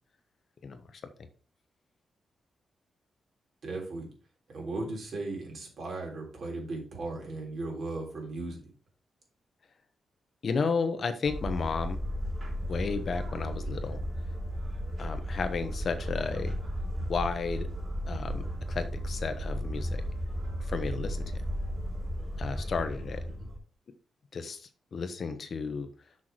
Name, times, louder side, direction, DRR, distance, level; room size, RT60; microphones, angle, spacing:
voice 1, 0.6-1.0 10.4-12.0 12.7-14.0 15.0-16.5 17.1-17.7 18.1-18.4 18.7-20.0 20.6-21.4 22.4-23.2 24.3-25.9, left 5 dB, 50° left, 9 dB, 1.0 m, -33 dB
voice 2, 3.6-4.1 4.5-8.6 23.3-23.5, right 2 dB, 55° right, 0 dB, 3.4 m, -37 dB
sound 1, 11.2-23.6, equal, 35° right, 3.6 m, -34 dB
6.5 x 5.7 x 4.5 m, 0.41 s
wide cardioid pair, 130°, 0 cm